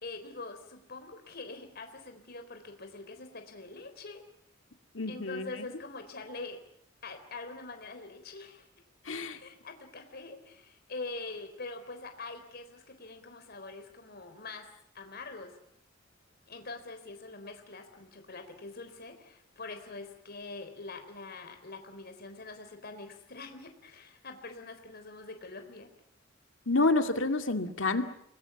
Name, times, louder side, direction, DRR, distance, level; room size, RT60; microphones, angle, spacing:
voice 1, 0.0-4.2 5.1-6.6 7.0-8.7 9.3-14.7 14.9-15.5 16.5-25.9, left 3 dB, 50° left, 6 dB, 3.8 m, -44 dB
voice 2, 4.9-5.5 9.1-9.4 26.7-28.0, left 2 dB, 70° left, 7 dB, 2.2 m, -28 dB
29.0 x 21.5 x 7.1 m, 0.71 s
head